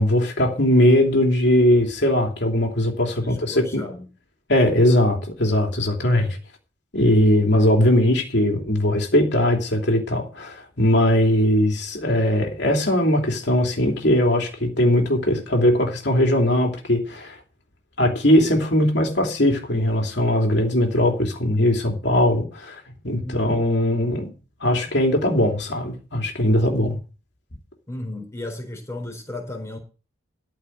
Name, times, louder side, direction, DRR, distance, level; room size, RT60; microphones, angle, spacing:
voice 1, 0.0-3.8 4.5-6.4 6.9-17.4 18.0-24.3 24.6-27.0, left 1 dB, 60° left, 3.0 m, -20 dB
voice 2, 3.2-4.1 23.2-23.4 27.9-29.8, left 1 dB, 15° left, 4.3 m, -34 dB
14.0 x 5.1 x 9.1 m
head